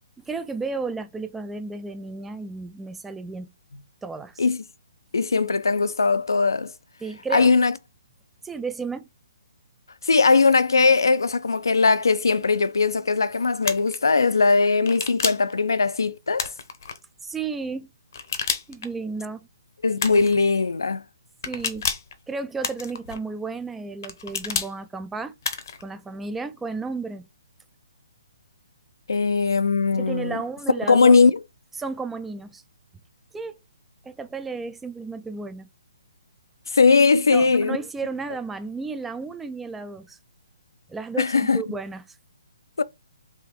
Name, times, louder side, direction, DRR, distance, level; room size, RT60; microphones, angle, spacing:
voice 1, 0.3-3.5 4.0-4.5 7.0-7.5 8.4-9.1 17.2-17.9 18.7-19.5 21.5-21.9 22.3-25.3 25.8-27.3 30.0-31.2 31.8-32.6 33.3-33.6 34.0-35.7 37.3-40.2 40.9-42.1, right 4 dB, 5° right, 0.3 m, -33 dB
voice 2, 5.1-6.7 7.3-7.7 10.0-16.5 19.8-21.0 29.1-30.4 30.9-31.4 36.7-37.8 41.2-41.6 42.8-42.9, left 4 dB, 90° left, 0.5 m, -19 dB
sound 1, 13.6-14.0 14.9-15.5 16.4-17.0 18.1-18.9 20.0-20.4 21.4-22.1 22.6-23.2 24.0-24.7 25.4-25.8, left 6 dB, 60° left, 0.8 m, -29 dB
3.5 x 2.6 x 4.2 m
hypercardioid pair, 150°, 2 cm